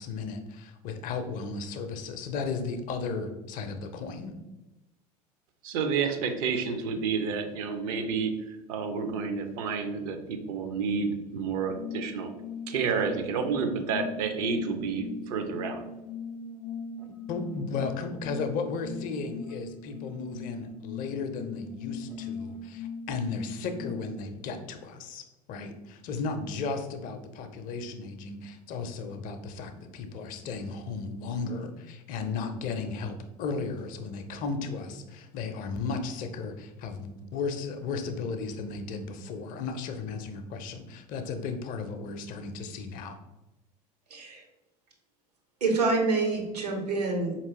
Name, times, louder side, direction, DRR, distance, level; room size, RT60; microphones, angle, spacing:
voice 1, 0.0-4.3 17.3-43.2, left 4 dB, 40° left, 7 dB, 0.5 m, -35 dB
voice 2, 5.6-12.3 12.7-15.8, right 5 dB, 55° right, 7 dB, 0.6 m, -30 dB
sound 1, 11.6-24.2, left 4 dB, 10° right, 0.4 m, -40 dB
voice 3, 44.1-44.4 45.6-47.4, right 3 dB, 75° right, 2 dB, 0.9 m, -27 dB
4.4 x 2.9 x 2.9 m, 1.0 s
figure-of-eight pair, 70°, 21 cm